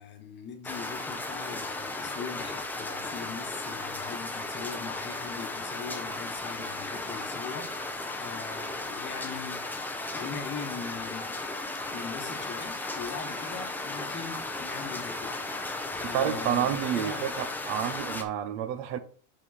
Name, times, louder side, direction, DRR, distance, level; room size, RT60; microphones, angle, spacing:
voice 1, 0.0-11.4 11.9-17.3, left 6 dB, 25° left, 1.3 m, -41 dB
sound 1, 0.6-18.2, left 2 dB, 5° left, 0.5 m, -35 dB
voice 2, 16.0-19.0, right 10 dB, 60° right, 1.0 m, -29 dB
5.7 x 5.5 x 4.1 m
supercardioid pair, 145°, 44 cm